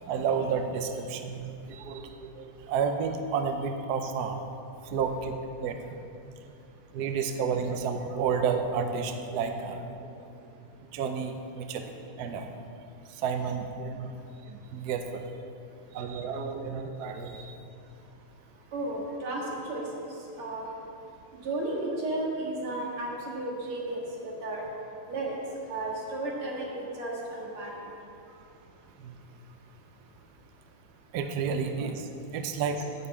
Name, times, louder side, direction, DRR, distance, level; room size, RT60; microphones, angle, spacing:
voice 1, 0.1-4.4 4.9-5.3 5.6-6.0 6.9-10.1 10.9-11.9 12.2-12.5 13.2-14.1 14.5-15.2 15.9-17.5 29.0-29.1 31.1-32.0 32.3-32.8, right 6 dB, 65° right, 6 dB, 1.0 m, -31 dB
voice 2, 18.7-19.9 20.4-20.6 21.4-24.7 25.1-25.4 25.7-27.8, right 2 dB, 90° right, -2 dB, 2.6 m, -33 dB
9.7 x 5.6 x 8.2 m, 2.6 s
omnidirectional pair, 2.3 m